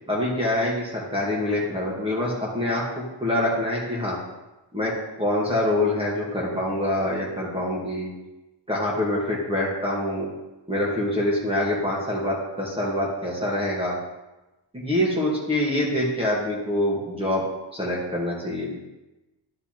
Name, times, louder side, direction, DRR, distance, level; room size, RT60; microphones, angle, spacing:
voice 1, 0.1-4.2 4.7-8.1 8.7-10.3 10.7-14.0 14.7-17.4 17.7-18.7, left 1 dB, 10° right, -5 dB, 1.4 m, -25 dB
12.0 x 5.4 x 2.9 m, 1.0 s
wide cardioid pair, 180°, 47 cm